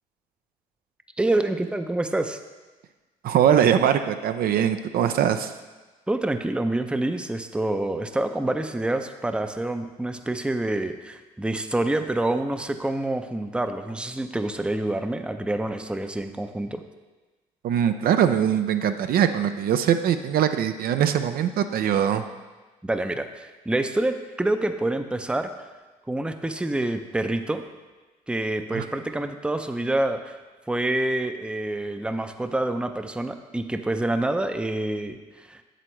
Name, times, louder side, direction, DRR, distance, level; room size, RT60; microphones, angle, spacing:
voice 1, 1.2-2.4 6.1-16.8 22.8-25.5 26.1-27.6 28.3-30.4 30.7-35.6, right 2 dB, 5° right, 8 dB, 0.6 m, -27 dB
voice 2, 3.2-5.5 17.6-22.2 28.7-28.8, right 9 dB, 65° right, 8 dB, 0.5 m, -22 dB
7.8 x 7.5 x 3.1 m, 1.2 s
supercardioid pair, 65°, 17 cm